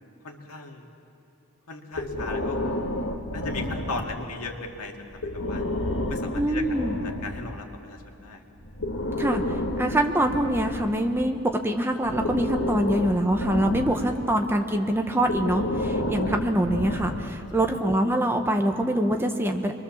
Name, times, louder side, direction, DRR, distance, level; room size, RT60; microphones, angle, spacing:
voice 1, 0.2-0.9 1.7-2.6 3.3-5.6 6.1-6.6 7.2-8.4 13.9-14.0, left 3 dB, 90° left, 2 dB, 2.3 m, -37 dB
Breathing, 1.9-4.4 5.1-7.5 8.6-11.4 12.0-14.3 15.2-17.5, left 1 dB, 60° left, 1.8 m, -30 dB
voice 2, 6.4-6.9 9.1-9.4 9.8-11.4 11.6-19.8, right 1 dB, 10° right, 4 dB, 1.1 m, -24 dB
27.0 x 22.0 x 7.2 m, 2.8 s
head